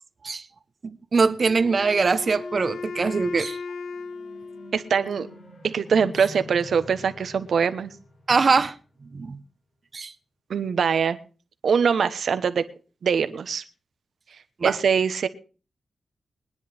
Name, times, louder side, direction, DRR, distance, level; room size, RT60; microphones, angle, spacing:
voice 1, 0.8-3.6 8.3-8.7 9.1-9.4 9.9-10.1 14.6-14.8, right 4 dB, 50° right, 1.0 m, -22 dB
Wind instrument woodwind instrument, 1.4-5.4, left 4 dB, 85° left, 0.6 m, -37 dB
sound 1, 3.6-9.0, left 1 dB, 70° left, 6.1 m, -46 dB
voice 2, 4.7-5.3 5.6-7.9 10.5-11.2 11.6-12.6 13.0-13.6 14.6-15.3, right 6 dB, 75° right, 1.2 m, -23 dB
22.5 x 10.0 x 3.5 m
wide cardioid pair, 90°, 0 cm